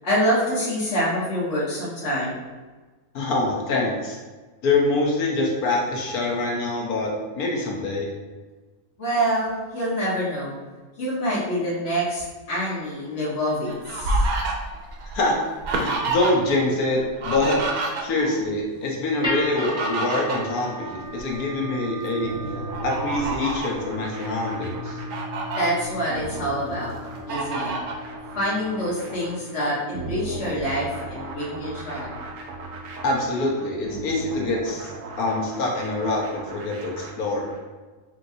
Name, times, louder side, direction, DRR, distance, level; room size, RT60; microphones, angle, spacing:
voice 1, 0.0-2.4 9.0-10.6 11.0-14.2 25.5-26.9 27.3-27.7 28.3-32.2, equal, 55° left, -9 dB, 1.5 m, -26 dB
voice 2, 3.1-4.2 4.6-8.1 15.1-15.4 15.7-17.6 18.0-22.6 22.8-25.0 33.0-34.9 35.2-37.5, left 2 dB, 85° left, -1 dB, 1.4 m, -25 dB
Fowl, 13.3-16.6 16.9-18.4 19.3-21.4 21.9-22.1 22.7-23.8 24.4-24.5 24.9-25.6 26.2-26.9 27.3-28.0, right 2 dB, 85° right, 1.2 m, -28 dB
sound 1, 19.2-35.4, equal, 5° right, 0.7 m, -37 dB
sound 2, 22.2-37.6, right 3 dB, 70° right, 1.0 m, -38 dB
4.9 x 3.0 x 2.7 m, 1.3 s
omnidirectional pair, 1.5 m